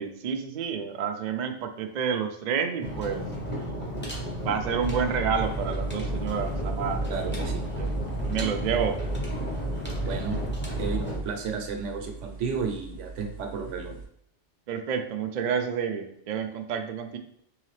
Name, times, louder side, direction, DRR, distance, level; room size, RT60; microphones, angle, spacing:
voice 1, 0.0-3.3 4.4-7.5 7.8-7.9 8.3-9.0 14.7-17.2, right 7 dB, 60° right, 5 dB, 0.4 m, -29 dB
sound 1, 2.8-11.2, equal, 10° left, 0.8 m, -34 dB
sound 2, 4.8-11.2, right 1 dB, 30° left, 1.1 m, -33 dB
sound 3, 5.3-14.1, right 4 dB, 55° left, 1.9 m, -44 dB
voice 2, 7.1-7.7 10.0-10.4 10.8-14.0, right 5 dB, 85° right, 4 dB, 1.0 m, -33 dB
3.8 x 3.1 x 3.2 m, 0.71 s
omnidirectional pair, 1.2 m